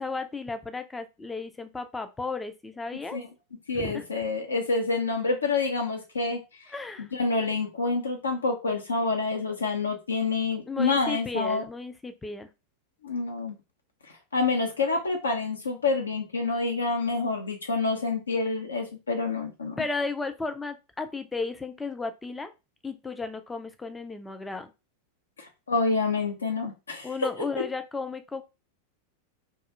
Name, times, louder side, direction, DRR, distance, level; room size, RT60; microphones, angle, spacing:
voice 1, 0.0-3.2 3.7-4.3 6.7-7.1 10.7-12.5 19.8-22.5 22.8-24.7 27.0-28.4, left 4 dB, 10° left, 9 dB, 0.4 m, -34 dB
voice 2, 3.7-6.4 7.0-11.6 13.0-13.5 14.3-19.8 25.7-27.1, left 3 dB, 75° left, 3 dB, 0.8 m, -27 dB
2.3 x 2.3 x 2.8 m, 0.27 s
figure-of-eight pair, 90°, 0 cm